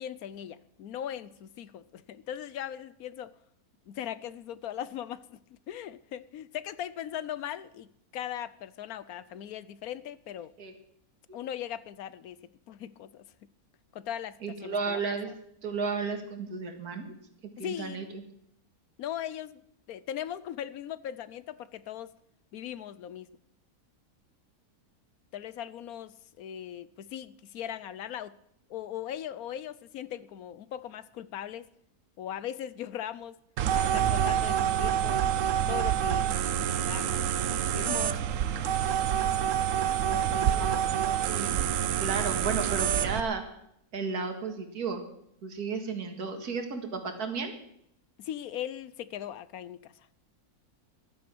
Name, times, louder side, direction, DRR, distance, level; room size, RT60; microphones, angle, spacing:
voice 1, 0.0-3.3 3.9-5.4 5.7-10.5 11.3-12.4 12.7-13.3 13.9-15.0 15.3-15.4 17.6-18.1 19.0-19.6 19.9-22.1 22.5-23.3 25.3-28.3 28.7-31.7 32.2-33.4 33.7-35.3 35.7-37.3 37.7-38.2 40.1-41.0 41.3-41.6 48.2-49.9, left 10 dB, 75° left, 1.2 m, -39 dB
voice 2, 14.4-15.3 15.6-17.1 17.6-18.2 40.3-41.5 42.0-43.4 43.9-45.0 45.4-47.5, right 5 dB, 80° right, 2.3 m, -33 dB
sound 1, 33.6-43.2, right 9 dB, 65° right, 1.0 m, -27 dB
15.0 x 11.5 x 6.1 m
omnidirectional pair, 1.6 m